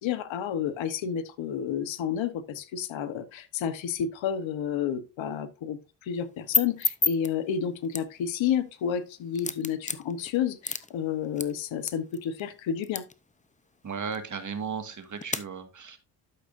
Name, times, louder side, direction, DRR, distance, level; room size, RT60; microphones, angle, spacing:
voice 1, 0.0-13.0, left 8 dB, 75° left, 1.2 m, -30 dB
sound 1, 6.2-15.4, left 4 dB, 15° left, 0.7 m, -35 dB
voice 2, 13.8-16.0, right 6 dB, 40° right, 1.9 m, -35 dB
12.0 x 6.5 x 2.6 m
cardioid pair, 90°, 46 cm